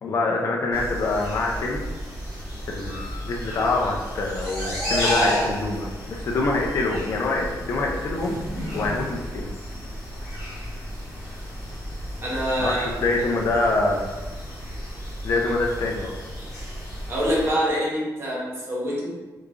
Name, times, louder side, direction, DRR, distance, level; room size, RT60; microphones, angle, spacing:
voice 1, 0.0-1.8 2.7-8.4 8.7-9.5 12.6-14.1 15.2-16.1, left 2 dB, 45° left, 0 dB, 0.4 m, -25 dB
sound 1, 0.7-17.5, equal, 10° right, 1.4 m, -32 dB
voice 2, 12.2-13.3 17.1-19.2, equal, 35° right, -5 dB, 0.9 m, -26 dB
3.5 x 3.1 x 2.4 m, 1.2 s
wide cardioid pair, 170°, 7 cm